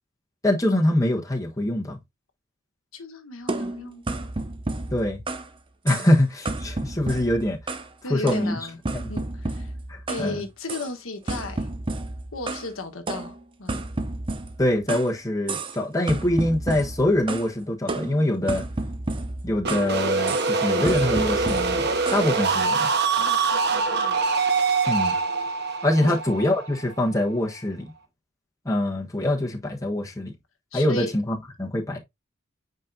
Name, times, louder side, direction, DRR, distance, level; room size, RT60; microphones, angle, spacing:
voice 1, 0.4-2.0 4.9-5.2 5.8-7.6 8.1-8.6 8.9-9.1 9.9-10.4 14.6-18.6 19.4-22.9 24.9-25.2 25.8-27.9 28.6-30.3 30.7-32.0, left 1 dB, 15° left, 1.2 m, -24 dB
voice 2, 2.9-4.3 5.9-6.1 8.0-8.8 9.1-9.7 10.1-11.7 12.3-13.8 23.2-24.2 26.0-26.2 30.7-31.1, left 2 dB, 80° left, 1.3 m, -36 dB
sound 1, 3.5-5.5 5.9-6.2 6.5-7.9 8.3-10.3 10.7-10.9 11.3-12.7 13.1-15.1 15.5-15.8 16.1-17.5 17.9-19.9 20.3-20.5 20.8-22.3, right 2 dB, 25° right, 0.8 m, -31 dB
sound 2, 19.6-27.4, right 4 dB, 50° right, 1.2 m, -24 dB
8.5 x 5.1 x 2.7 m
head